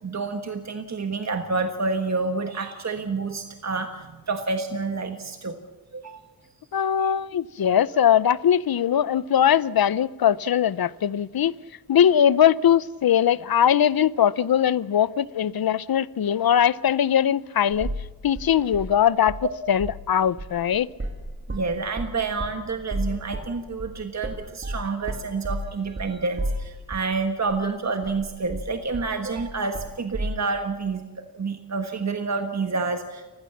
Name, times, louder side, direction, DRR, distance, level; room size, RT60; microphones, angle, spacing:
voice 1, 0.0-5.6 5.9-6.2 7.0-7.1 21.5-31.0 31.3-33.4, right 4 dB, 50° right, 1.5 m, -28 dB
voice 2, 6.7-11.5 11.9-17.9 18.2-19.4 19.7-20.9, left 9 dB, 85° left, 0.7 m, -21 dB
sound 1, 17.7-18.1 18.4-19.5 19.7-20.1 20.4-27.2 27.5-27.6 28.0-30.4, right 1 dB, 35° right, 2.8 m, -32 dB
29.5 x 16.0 x 7.2 m
wide cardioid pair, 125°, 35 cm